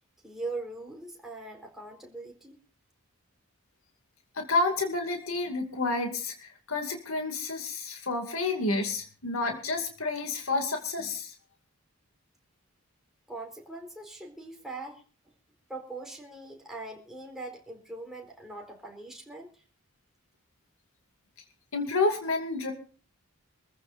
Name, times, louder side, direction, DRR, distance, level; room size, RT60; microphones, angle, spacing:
voice 1, 0.2-2.6 13.3-15.0 15.7-19.6, right 2 dB, ahead, 0 dB, 4.3 m, -41 dB
voice 2, 4.4-11.3 21.7-22.7, left 3 dB, 70° left, 4 dB, 2.4 m, -30 dB
25.5 x 15.0 x 2.6 m, 0.40 s
head